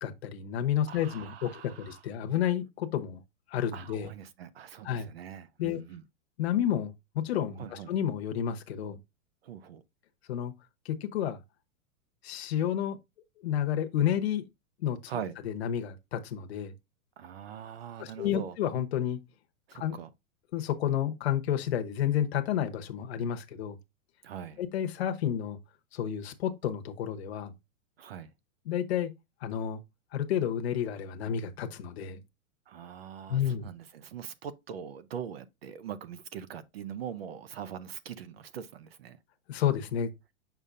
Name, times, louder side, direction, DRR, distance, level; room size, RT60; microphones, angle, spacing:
voice 1, 0.0-1.5 1.8-3.2 3.5-4.1 4.8-5.1 5.6-5.8 6.4-9.0 10.3-10.5 10.8-11.4 12.2-13.0 13.4-14.4 14.8-15.0 15.4-16.7 18.0-19.2 19.7-20.0 20.5-23.8 24.6-25.6 25.9-27.5 28.6-29.1 29.4-29.8 30.1-32.2 33.3-33.7 39.5-40.1, left 10 dB, 50° left, 1.0 m, -30 dB
voice 2, 0.9-2.0 3.7-6.0 7.6-7.9 9.4-9.8 15.1-15.4 17.2-18.6 19.7-20.1 24.2-24.6 28.0-28.3 32.7-39.2, right 8 dB, 45° right, 0.6 m, -42 dB
6.9 x 5.5 x 2.5 m
supercardioid pair, 175°, 41 cm